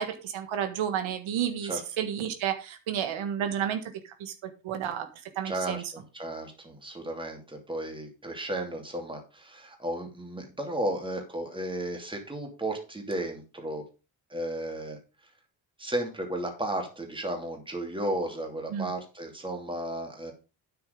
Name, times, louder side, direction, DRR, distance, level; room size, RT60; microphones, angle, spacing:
voice 1, 0.0-1.7 2.0-3.8 4.2-5.1 5.3-5.8 18.7-18.9, right 9 dB, 80° right, 8 dB, 1.7 m, -31 dB
voice 2, 5.4-13.8 14.3-15.0 15.8-20.3, right 1 dB, 10° right, 3 dB, 2.8 m, -34 dB
9.3 x 7.0 x 5.3 m, 0.31 s
cardioid pair, 125°, 46 cm